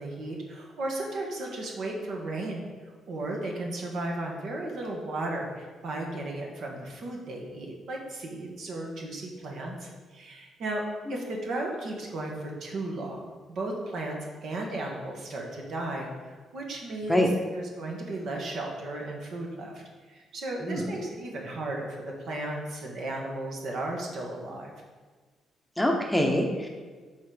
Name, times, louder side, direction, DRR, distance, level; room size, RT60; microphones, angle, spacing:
voice 1, 0.0-2.7 3.1-10.8 11.1-19.8 20.1-24.7, right 2 dB, 70° right, 0 dB, 1.4 m, -35 dB
voice 2, 25.8-26.7, left 1 dB, 5° left, 1 dB, 0.8 m, -24 dB
7.0 x 3.9 x 5.1 m, 1.4 s
cardioid pair, 90°, 0 cm